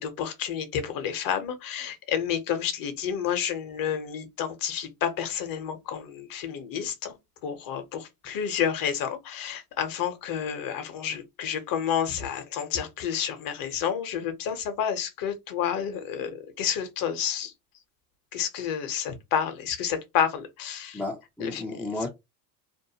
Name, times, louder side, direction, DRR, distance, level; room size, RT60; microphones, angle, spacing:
voice 1, 0.0-7.2 7.4-16.3 16.6-17.5 18.3-21.0 21.4-21.6, left 8 dB, 45° left, 0.9 m, -30 dB
voice 2, 20.9-22.1, left 2 dB, ahead, 0.4 m, -33 dB
2.6 x 2.1 x 2.8 m
hypercardioid pair, 95°, 47 cm